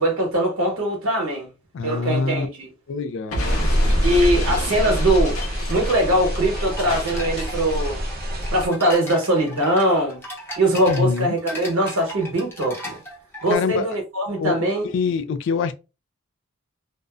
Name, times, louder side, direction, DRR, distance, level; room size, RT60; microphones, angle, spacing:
voice 1, 0.0-1.5 1.8-2.7 4.0-5.4 5.7-8.0 8.5-10.2 10.6-13.0 13.4-14.9, right 1 dB, 70° right, 1.1 m, -21 dB
voice 2, 1.7-2.5 2.9-3.7 10.9-11.3 13.5-13.9 14.4-15.7, left 5 dB, 55° left, 0.3 m, -25 dB
Explosion, 3.3-8.1, equal, 80° left, 0.7 m, -30 dB
sound 1, 3.4-8.7, equal, 45° right, 0.7 m, -25 dB
sound 2, 6.5-13.5, equal, 10° left, 0.6 m, -37 dB
2.5 x 2.1 x 2.3 m
head